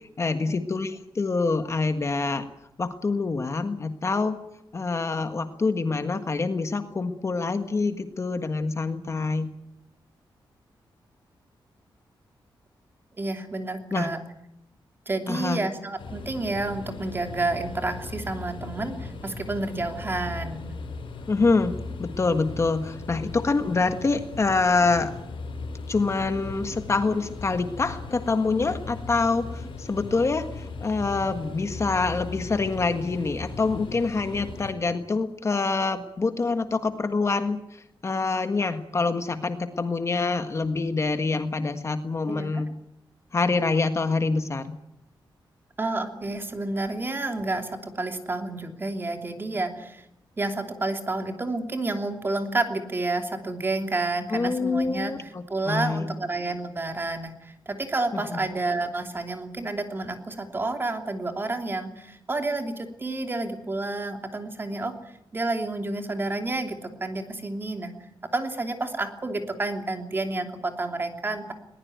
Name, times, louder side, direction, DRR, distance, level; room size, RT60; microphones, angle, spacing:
voice 1, 0.0-2.4 2.8-4.4 4.7-9.5 13.9-14.1 15.3-15.6 21.3-25.1 25.9-42.7 43.3-44.8 54.3-56.1 58.1-58.4, left 3 dB, 35° left, 8 dB, 1.5 m, -26 dB
voice 2, 13.2-14.2 15.1-20.7 42.3-42.6 45.8-50.0 50.4-64.9 65.3-67.9 68.3-71.5, right 2 dB, 25° right, 5 dB, 2.9 m, -30 dB
sound 1, 16.0-34.7, left 3 dB, 85° left, 7.6 m, -38 dB
21.0 x 20.0 x 9.4 m, 0.80 s
wide cardioid pair, 150°, 9 cm